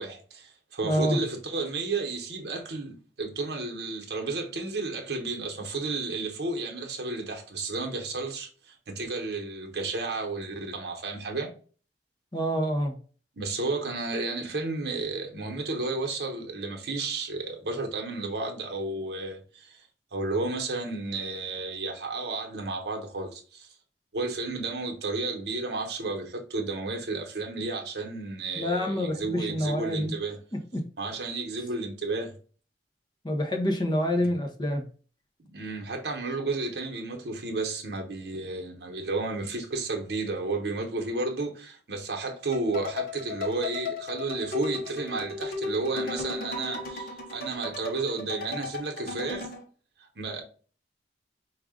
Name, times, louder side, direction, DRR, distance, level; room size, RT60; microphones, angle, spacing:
voice 1, 0.0-11.5 13.4-19.8 20.1-23.7 24.1-30.4 31.0-32.3 34.2-34.3 35.4-49.5 50.2-50.4, right 3 dB, 65° right, 0.9 m, -32 dB
voice 2, 0.8-1.2 12.3-12.9 28.6-30.1 30.5-30.8 33.2-34.8, equal, 25° left, 0.7 m, -27 dB
sound 1, 42.5-49.6, left 3 dB, 55° left, 1.0 m, -35 dB
4.8 x 2.4 x 3.6 m
head